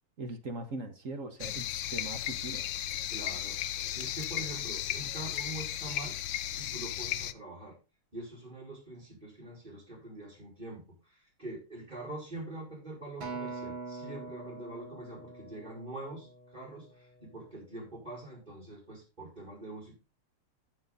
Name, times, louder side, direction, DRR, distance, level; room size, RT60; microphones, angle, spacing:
voice 1, 0.2-2.7, right 2 dB, 40° right, 7 dB, 1.5 m, -40 dB
sound 1, 1.4-7.3, left 11 dB, 70° left, 1.2 m, -35 dB
voice 2, 3.1-3.6 3.9-6.2 6.5-7.8 8.1-16.3 16.5-19.9, right 2 dB, 20° right, -6 dB, 5.2 m, -44 dB
Acoustic guitar, 13.2-17.6 18.3-18.4, right 3 dB, 65° right, 3.2 m, -44 dB
13.5 x 6.8 x 4.0 m, 0.29 s
omnidirectional pair, 2.4 m